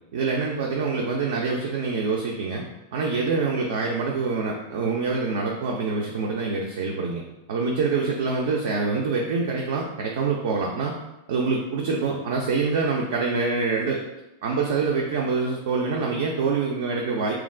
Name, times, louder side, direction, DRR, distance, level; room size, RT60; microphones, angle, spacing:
voice 1, 0.1-2.6 2.9-7.2 7.5-11.0 11.3-14.0 14.4-17.3, right 4 dB, 55° right, -1 dB, 0.3 m, -25 dB
3.0 x 2.3 x 2.4 m, 0.96 s
figure-of-eight pair, 90°, 0 cm